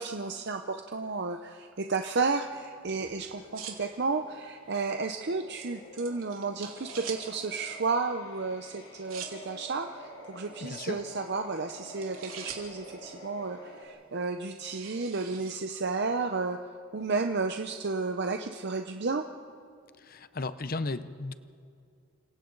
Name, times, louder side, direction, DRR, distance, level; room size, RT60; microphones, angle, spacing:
voice 1, 0.0-16.6 16.9-19.2, right 4 dB, 50° right, 5 dB, 0.7 m, -32 dB
sound 1, 2.1-16.1, right 7 dB, 75° right, 3.1 m, -48 dB
sound 2, 3.0-13.8, equal, 60° left, 4.7 m, -49 dB
voice 2, 10.6-11.0 20.0-21.3, left 3 dB, 45° left, 13 dB, 0.7 m, -35 dB
30.0 x 26.0 x 4.0 m, 2.4 s
head